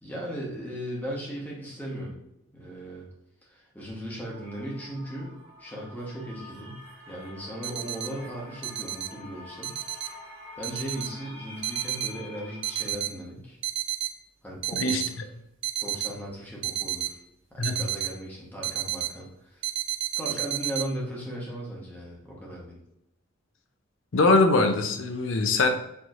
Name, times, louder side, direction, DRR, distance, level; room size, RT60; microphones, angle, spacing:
voice 1, 0.0-2.2 2.5-3.1 3.4-6.8 7.0-9.7 10.6-13.6 14.4-15.0 15.8-17.2 17.5-19.6 20.2-22.8, right 1 dB, 10° left, -4 dB, 1.0 m, -37 dB
sound 1, 4.3-12.9, left 2 dB, 30° right, 1.0 m, -47 dB
sound 2, 7.6-8.1 8.6-9.1 9.6-10.1 10.6-11.1 11.6-12.1 12.6-13.1 13.6-14.1 14.6-15.1 15.6-16.1 16.6-17.1 17.6-18.1 18.6-19.1 19.6-20.8, right 14 dB, 60° right, 0.4 m, -30 dB
voice 2, 24.1-25.7, left 3 dB, 65° left, 6 dB, 0.5 m, -22 dB
4.3 x 2.9 x 2.5 m, 0.85 s
head